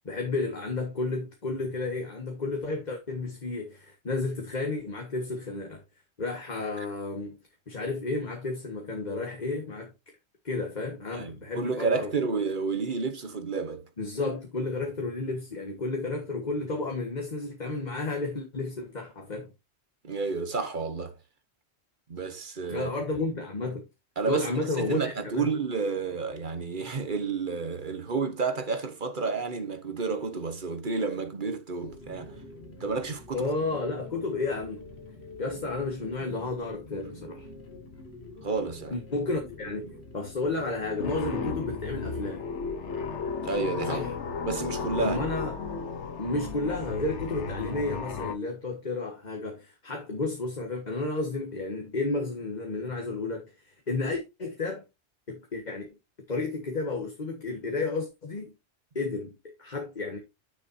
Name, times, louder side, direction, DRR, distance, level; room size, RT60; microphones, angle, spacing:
voice 1, 0.0-5.8 6.2-7.4 7.7-9.9 10.4-12.1 14.0-19.5 22.7-23.8 24.3-25.5 33.3-34.8 35.4-37.5 38.9-42.5 43.8-44.1 45.0-45.5 46.2-54.8 55.3-55.9 56.3-58.5 58.9-60.2, left 3 dB, 40° left, 1.6 m, -32 dB
voice 2, 11.1-13.8 20.0-21.1 22.1-22.9 24.2-24.5 24.8-32.4 32.8-33.5 38.4-39.0 43.4-44.1 44.4-45.2, right 4 dB, 45° right, 1.3 m, -30 dB
sound 1, 31.8-41.5, left 2 dB, 65° left, 2.3 m, -46 dB
sound 2, 41.0-48.4, left 5 dB, 85° left, 1.2 m, -34 dB
10.0 x 6.7 x 2.7 m
omnidirectional pair, 1.2 m